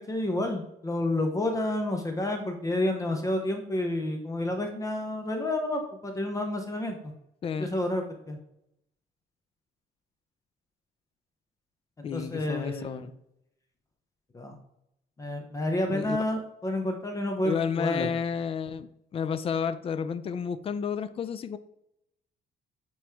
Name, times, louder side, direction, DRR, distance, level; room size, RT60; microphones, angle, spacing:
voice 1, 0.0-7.1 7.6-8.4 12.1-13.1 14.3-14.6 15.2-18.1, left 1 dB, 20° left, 4 dB, 0.8 m, -30 dB
voice 2, 12.0-13.1 15.9-16.2 17.4-18.9 19.1-21.6, left 6 dB, 35° left, 12 dB, 0.4 m, -31 dB
8.6 x 3.1 x 3.5 m, 0.81 s
cardioid pair, 125°, 17 cm